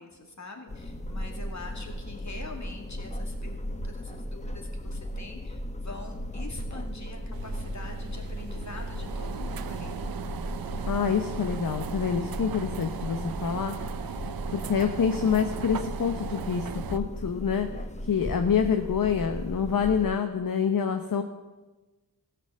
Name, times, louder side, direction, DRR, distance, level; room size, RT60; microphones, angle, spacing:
voice 1, 0.0-9.9, left 3 dB, 50° left, 1 dB, 2.4 m, -44 dB
sound 1, 0.7-20.1, equal, 20° left, 0.9 m, -36 dB
sound 2, 7.3-17.0, right 8 dB, 75° right, 0.6 m, -38 dB
voice 2, 10.9-13.8 14.5-17.7 18.0-21.2, left 7 dB, 65° left, 6 dB, 0.9 m, -26 dB
15.5 x 6.9 x 7.4 m, 1.2 s
wide cardioid pair, 65°, 36 cm